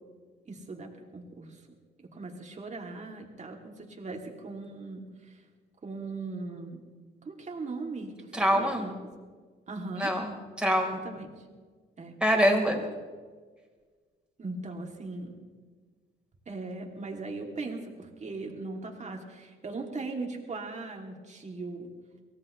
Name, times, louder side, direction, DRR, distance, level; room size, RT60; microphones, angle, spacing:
voice 1, 0.5-1.6 2.0-5.3 5.8-6.8 7.2-8.9 9.7-10.1 10.9-11.4 12.0-12.1 14.4-15.3 16.5-21.9, right 3 dB, 35° right, 1 dB, 2.8 m, -39 dB
voice 2, 8.3-8.8 10.0-11.0 12.2-12.8, equal, 5° right, 0 dB, 4.2 m, -25 dB
24.0 x 17.5 x 3.3 m, 1.5 s
cardioid pair, 90°, 20 cm